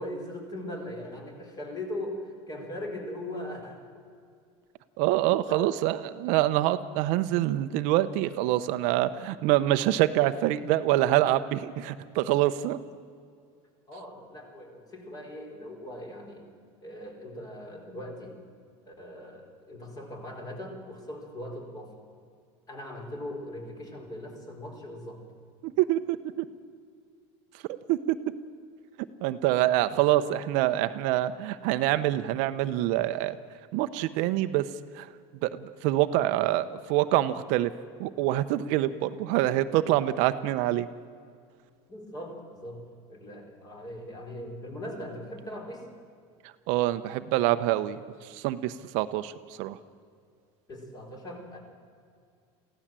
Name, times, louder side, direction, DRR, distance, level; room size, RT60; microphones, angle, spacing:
voice 1, 0.0-3.8 5.4-5.7 13.9-16.5 16.8-18.4 18.9-21.9 22.7-25.2 29.9-30.0 41.9-45.9 50.7-51.6, left 1 dB, 25° left, 3 dB, 4.1 m, -40 dB
voice 2, 5.0-12.8 25.6-26.4 27.9-28.2 29.2-33.4 33.7-34.6 34.9-35.1 35.4-37.7 38.0-40.9 46.7-49.8, right 14 dB, 60° right, 11 dB, 0.8 m, -26 dB
23.5 x 16.0 x 7.5 m, 2.3 s
supercardioid pair, 150°, 15 cm